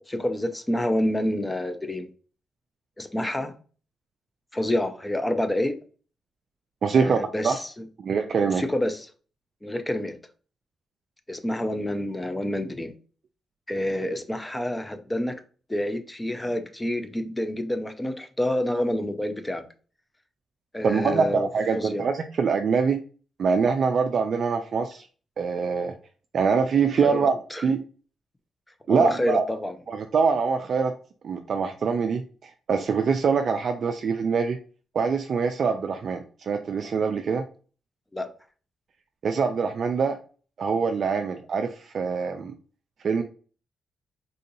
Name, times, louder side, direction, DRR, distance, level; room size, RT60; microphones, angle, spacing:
voice 1, 0.1-2.1 3.0-3.5 4.5-5.8 6.9-7.8 8.4-9.1 9.6-10.2 11.3-12.9 13.7-15.3 15.7-19.6 20.7-21.5 21.8-22.0 27.0-27.6 28.9-29.7 38.1-38.3, left 1 dB, 15° left, 0.5 m, -28 dB
voice 2, 6.8-7.2 7.4-7.6 8.0-8.6 20.8-23.0 23.4-25.1 25.4-25.9 26.3-27.8 28.9-29.5 29.9-30.9 31.2-34.6 34.9-37.4 39.2-40.2 40.6-42.5 43.0-43.2, right 5 dB, 60° right, 0.3 m, -24 dB
3.7 x 2.7 x 2.6 m
cardioid pair, 85°, 0 cm